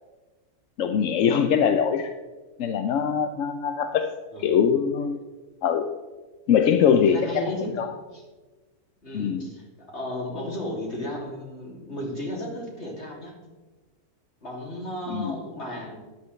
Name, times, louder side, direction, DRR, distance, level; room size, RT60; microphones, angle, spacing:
voice 1, 0.8-2.1 2.6-4.1 4.4-5.2 5.6-5.9 6.5-7.9 9.1-9.5 15.1-15.4, left 7 dB, 65° left, 7 dB, 0.9 m, -22 dB
voice 2, 7.0-7.8 8.1-8.2 9.0-13.4 14.4-16.0, left 1 dB, 45° left, -1 dB, 2.9 m, -34 dB
13.0 x 10.5 x 3.2 m, 1.3 s
omnidirectional pair, 1.6 m